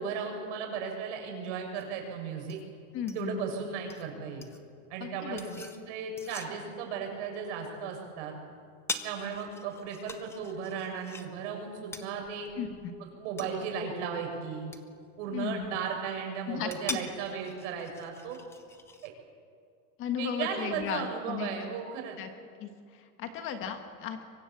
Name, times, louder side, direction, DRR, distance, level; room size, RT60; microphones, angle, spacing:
voice 1, 0.0-2.6 3.1-4.4 4.9-8.3 9.0-12.5 13.0-14.7 15.2-18.4 19.0-19.1 20.2-22.2, right 6 dB, 55° right, 2 dB, 6.6 m, -36 dB
sound 1, 1.8-19.1, left 3 dB, 5° left, 0.7 m, -45 dB
voice 2, 2.9-3.4 5.0-5.6 12.6-12.9 15.3-15.7 16.5-17.0 20.0-21.5 22.2-22.3 22.6-24.2, left 8 dB, 30° left, 6 dB, 1.5 m, -35 dB
25.5 x 24.0 x 7.2 m, 2.2 s
supercardioid pair, 175°, 42 cm